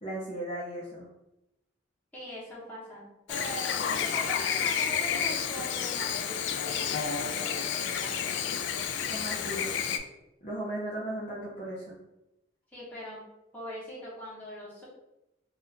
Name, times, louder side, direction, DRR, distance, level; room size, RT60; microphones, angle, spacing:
voice 1, 0.0-1.1 9.1-9.7 10.4-11.9, right 1 dB, 30° left, -7 dB, 0.7 m, -36 dB
voice 2, 2.1-8.2 12.7-13.2 13.5-14.8, equal, 10° left, -8 dB, 1.2 m, -41 dB
Chirp tweet / Buzz, 3.3-10.0, left 7 dB, 65° left, 0.3 m, -30 dB
2.6 x 2.4 x 4.1 m, 0.90 s
head